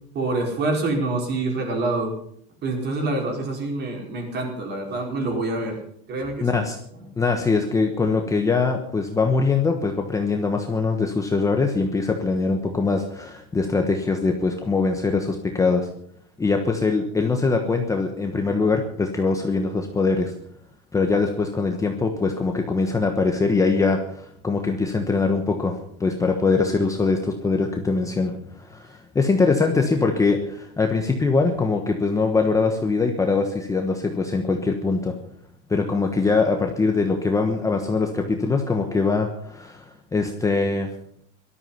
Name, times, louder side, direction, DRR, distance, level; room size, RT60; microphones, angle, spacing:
voice 1, 0.1-2.1 2.6-5.8 6.1-6.6, right 2 dB, 35° right, 2 dB, 4.9 m, -26 dB
voice 2, 6.4-6.8 7.2-15.9 16.4-20.3 20.9-35.1 35.7-40.9, left 4 dB, 10° left, 3 dB, 1.2 m, -22 dB
18.0 x 13.0 x 5.8 m, 0.67 s
cardioid pair, 160°, 31 cm